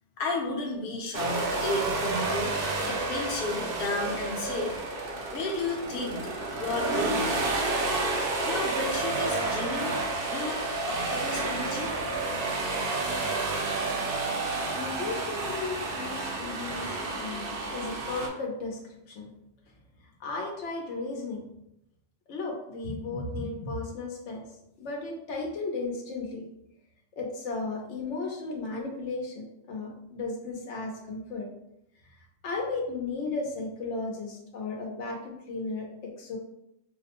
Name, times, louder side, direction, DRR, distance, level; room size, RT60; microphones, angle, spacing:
voice 1, 0.2-2.5 2.9-4.7 5.3-7.3 8.4-10.0 10.2-11.9, left 2 dB, 60° left, 0 dB, 0.9 m, -33 dB
sound 1, 1.1-18.3, right 3 dB, 60° right, 0.7 m, -30 dB
voice 2, 14.7-18.8 19.1-19.3 20.2-21.4 22.3-24.4 24.8-26.5 27.1-31.5 32.0-32.2 32.4-36.4, left 3 dB, 85° left, 0 dB, 1.0 m, -35 dB
4.5 x 2.1 x 2.9 m, 0.82 s
omnidirectional pair, 1.2 m